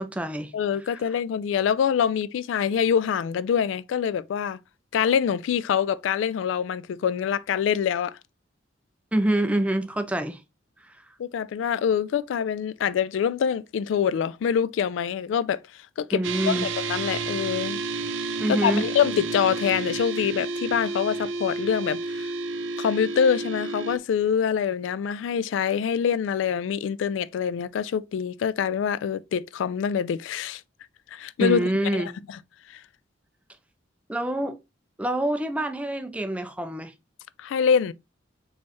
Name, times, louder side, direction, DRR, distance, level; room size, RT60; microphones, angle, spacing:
voice 1, 0.0-0.5 9.1-10.4 16.1-16.7 18.4-18.9 31.4-32.1 34.1-34.6 35.0-36.9, right 1 dB, 5° right, 0.5 m, -26 dB
voice 2, 0.5-4.6 4.9-8.2 11.2-17.8 18.5-22.3 22.8-30.6 31.1-32.0 32.7-32.8 37.4-37.9, left 7 dB, 80° left, 0.3 m, -25 dB
sound 1, 16.2-24.0, right 3 dB, 80° right, 0.5 m, -31 dB
4.3 x 3.1 x 3.0 m
head